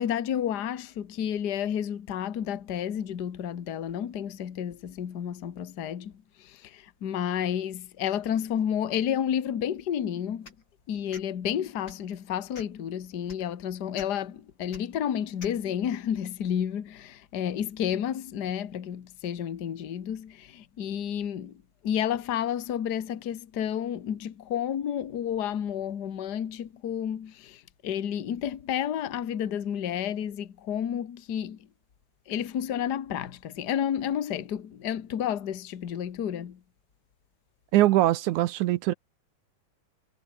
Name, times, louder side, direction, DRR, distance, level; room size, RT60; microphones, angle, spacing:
voice 1, 0.0-6.1 6.4-10.5 10.9-31.6 32.3-36.6, left 9 dB, 50° left, 1.2 m, -31 dB
sound 1, 10.4-10.6 11.1-11.3 11.8-12.1 12.5-12.8 13.3-13.4 13.9-14.1 14.7-14.8 15.4-15.6, left 4 dB, 35° left, 4.4 m, -45 dB
voice 2, 37.7-38.9, right 15 dB, 75° right, 2.1 m, -22 dB
omnidirectional pair, 3.8 m